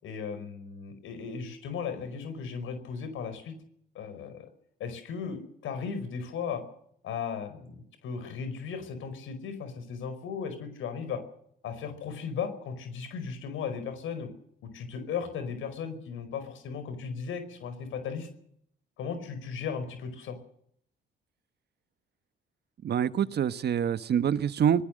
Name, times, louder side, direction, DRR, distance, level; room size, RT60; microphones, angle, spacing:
voice 1, 0.0-3.5 3.9-4.5 4.8-6.6 7.0-11.2 11.6-14.3 14.6-18.3 19.0-20.4, left 6 dB, 85° left, 9 dB, 5.0 m, -36 dB
voice 2, 22.8-24.8, right 8 dB, 55° right, 13 dB, 1.3 m, -26 dB
24.0 x 19.5 x 6.5 m, 0.67 s
cardioid pair, 90°, 20 cm